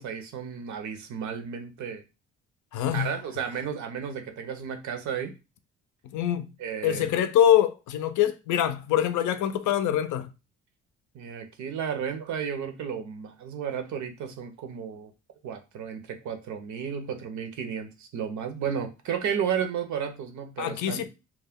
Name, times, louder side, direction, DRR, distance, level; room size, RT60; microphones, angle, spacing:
voice 1, 0.0-2.0 2.9-5.4 6.6-7.1 11.1-15.1 15.4-21.1, right 7 dB, 70° right, 0.6 m, -33 dB
voice 2, 2.7-3.2 6.0-6.5 6.8-10.3 20.6-21.1, left 10 dB, 75° left, 0.5 m, -24 dB
2.3 x 2.1 x 3.5 m
cardioid pair, 90°, 30 cm